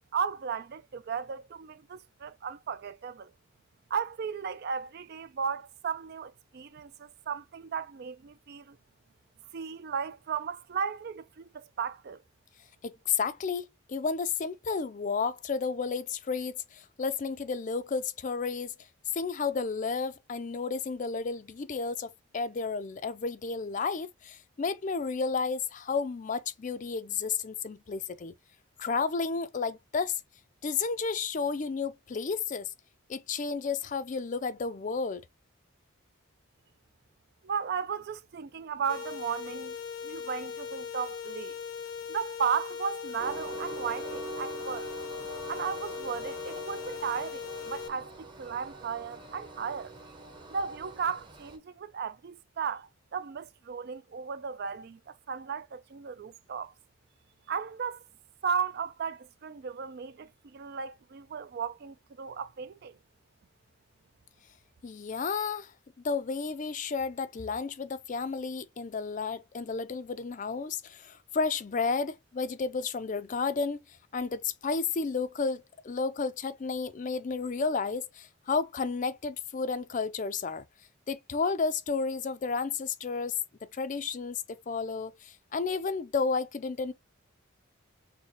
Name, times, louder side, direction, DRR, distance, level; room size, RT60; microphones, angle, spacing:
voice 1, 0.1-3.3 3.9-8.8 9.5-12.2 37.4-39.8 40.0-41.6 42.1-44.9 45.5-48.1 48.4-49.9 50.5-56.7 57.5-58.0 58.4-62.9, right 6 dB, 50° right, 0.3 m, -35 dB
voice 2, 12.8-18.7 19.1-28.3 28.8-30.2 30.6-32.7 33.1-35.2 64.8-65.7 66.0-73.8 74.1-80.6 81.1-83.4 83.7-86.9, left 5 dB, 35° left, 0.4 m, -32 dB
sound 1, 38.9-47.9, left 7 dB, 80° left, 0.8 m, -39 dB
Train, 43.2-51.6, right 3 dB, 20° right, 0.8 m, -44 dB
6.4 x 2.2 x 2.9 m
head